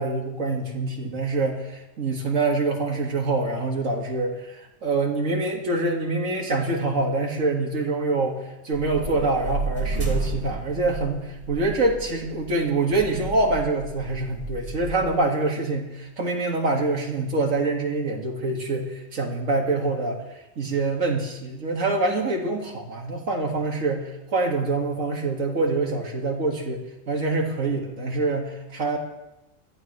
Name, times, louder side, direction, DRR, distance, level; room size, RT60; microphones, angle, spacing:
voice 1, 0.0-8.4 8.6-20.2 20.6-29.0, right 3 dB, 70° right, 0 dB, 2.4 m, -25 dB
sound 1, 8.7-15.1, right 3 dB, 85° right, 3.3 m, -32 dB
21.5 x 14.0 x 3.3 m, 0.94 s
omnidirectional pair, 1.4 m